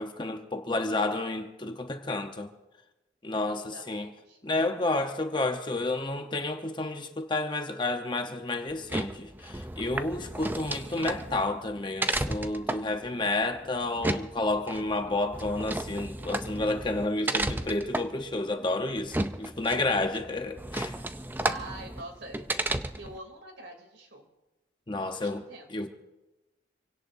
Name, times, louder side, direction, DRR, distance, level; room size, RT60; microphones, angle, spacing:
voice 1, 0.0-2.5 3.2-4.1 4.4-21.0 24.9-25.4 25.7-25.9, left 2 dB, 25° left, 1.0 m, -30 dB
voice 2, 3.5-4.4 21.4-22.4 23.0-24.3 25.0-25.8, right 2 dB, 80° right, 3.1 m, -45 dB
sound 1, 8.7-23.2, right 1 dB, 10° right, 0.4 m, -34 dB
27.0 x 17.0 x 2.7 m
head